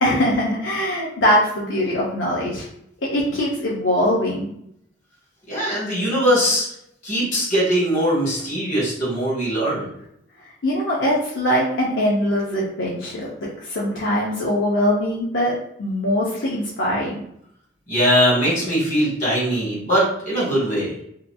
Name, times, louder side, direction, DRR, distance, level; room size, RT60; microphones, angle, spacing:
voice 1, 0.0-2.7 3.1-4.5 10.6-17.2, equal, 80° left, -5 dB, 0.6 m, -22 dB
voice 2, 5.5-6.6 7.0-9.9 17.9-20.9, equal, 45° left, -6 dB, 1.5 m, -21 dB
2.8 x 2.5 x 2.2 m, 0.73 s
head